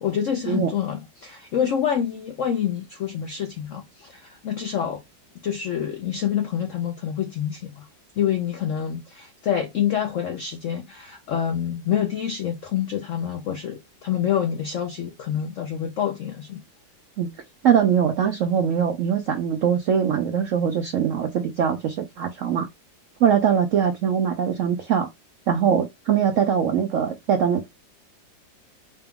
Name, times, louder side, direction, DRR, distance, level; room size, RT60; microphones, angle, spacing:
voice 1, 0.0-5.0 5.4-7.9 8.2-16.6, left 9 dB, 75° left, 0.7 m, -27 dB
voice 2, 17.6-22.7 23.2-25.1 25.5-27.7, right 8 dB, 75° right, 0.7 m, -22 dB
4.2 x 2.3 x 3.5 m
omnidirectional pair, 2.0 m